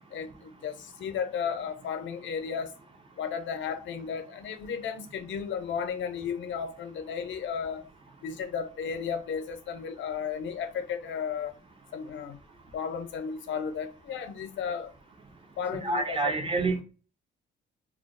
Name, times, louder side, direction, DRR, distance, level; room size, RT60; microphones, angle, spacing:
voice 1, 0.1-2.7 3.2-7.9 8.2-11.5 11.9-12.4 12.7-14.9 15.6-16.3, left 7 dB, 70° left, 0.7 m, -34 dB
voice 2, 15.8-16.8, right 3 dB, 25° right, 0.8 m, -27 dB
2.3 x 2.2 x 3.8 m
cardioid pair, 90°, 20 cm